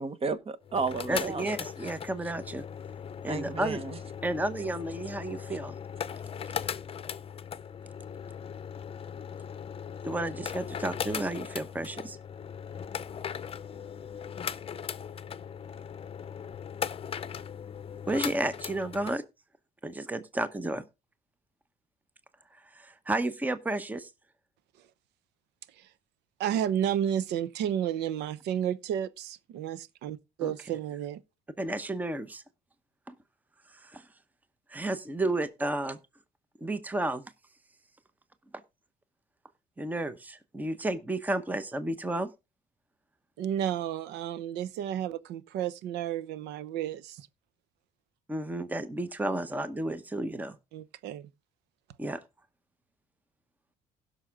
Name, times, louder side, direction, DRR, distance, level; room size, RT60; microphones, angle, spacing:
voice 1, 0.0-1.5 1.8-1.9 3.3-4.0, right 4 dB, 35° right, 1.1 m, -33 dB
sound 1, 0.6-19.2, left 7 dB, 35° left, 0.7 m, -38 dB
voice 2, 1.1-2.6 3.2-3.8 4.2-5.7 10.0-12.2 18.1-19.2 19.8-20.8 22.7-24.1 30.4-30.5 31.6-32.4 33.1-33.2 33.8-34.0 34.7-36.0 36.6-37.2 39.8-42.3 48.3-50.6 52.0-52.2, right 2 dB, 10° right, 0.8 m, -32 dB
voice 3, 26.4-31.2 43.4-47.3 50.7-51.3, right 10 dB, 85° right, 0.8 m, -32 dB
16.0 x 6.2 x 3.7 m
cardioid pair, 110°, 17 cm